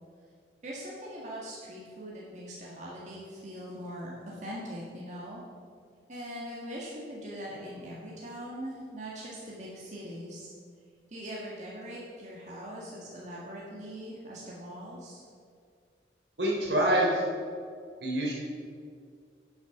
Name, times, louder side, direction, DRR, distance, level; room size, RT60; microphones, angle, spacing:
voice 1, 0.6-5.4 6.1-10.5 11.1-15.2, equal, 40° right, -5 dB, 1.9 m, -41 dB
voice 2, 16.4-17.2 18.0-18.3, right 1 dB, 75° right, -3 dB, 3.2 m, -26 dB
10.0 x 8.0 x 5.9 m, 2.2 s
head